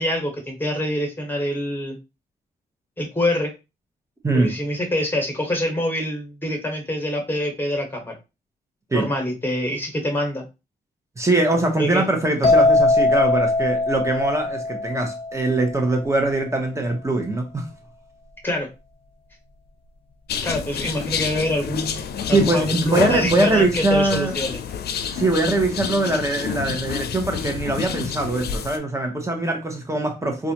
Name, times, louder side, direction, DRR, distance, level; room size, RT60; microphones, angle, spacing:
voice 1, 0.0-2.0 3.0-3.5 4.3-8.1 8.9-10.4 11.8-12.0 18.4-18.7 20.4-22.0 22.3-24.6, left 1 dB, 10° left, 1.5 m, -25 dB
voice 2, 4.2-4.5 8.9-9.1 11.2-17.7 22.3-24.3 25.1-30.5, right 2 dB, 15° right, 1.1 m, -22 dB
sound 1, 12.4-16.1, left 2 dB, 30° left, 1.1 m, -20 dB
sound 2, 20.3-28.8, left 7 dB, 70° left, 0.5 m, -28 dB
3.9 x 2.5 x 2.9 m
cardioid pair, 90°, 17 cm